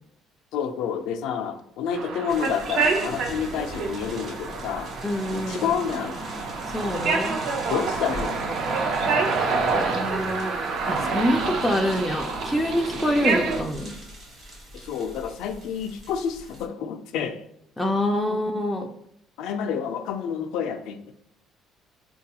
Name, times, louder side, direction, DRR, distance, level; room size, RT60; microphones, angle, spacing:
voice 1, 0.5-4.9 5.3-6.2 7.7-8.4 14.7-17.4 18.3-18.4 19.4-21.1, left 7 dB, 80° left, 7 dB, 0.4 m, -29 dB
sound 1, 1.9-13.6, right 4 dB, 60° right, 0.6 m, -27 dB
sound 2, 2.3-16.7, equal, 40° right, 1.1 m, -43 dB
voice 2, 5.0-5.8 6.7-7.4 9.8-10.6 10.9-13.9 17.8-18.9, equal, 5° left, 0 dB, 0.3 m, -26 dB
4.0 x 2.3 x 2.8 m, 0.76 s
cardioid pair, 145°, 0 cm